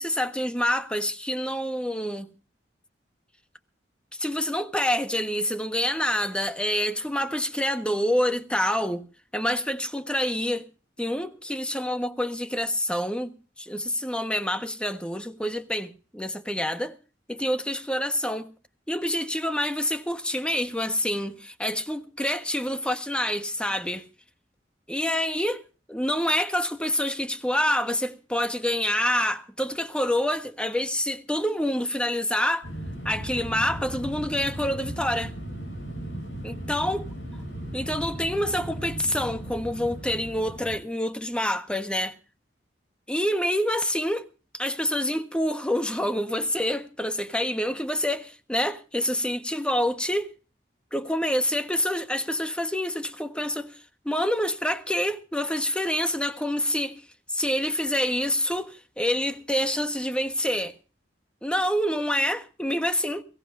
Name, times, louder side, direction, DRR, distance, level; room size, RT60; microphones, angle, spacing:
voice 1, 0.0-2.3 4.1-9.0 9.3-10.7 11.0-17.0 17.3-18.5 18.9-24.0 24.9-25.6 25.9-32.7 33.0-35.3 36.4-37.0 37.7-42.2 43.1-44.3 44.5-50.3 50.9-53.8 54.0-57.0 57.3-60.7 61.4-63.2, left 1 dB, 5° left, 1.3 m, -27 dB
sound 1, 32.6-40.8, right 1 dB, 75° left, 6.8 m, -36 dB
22.5 x 17.5 x 2.6 m
head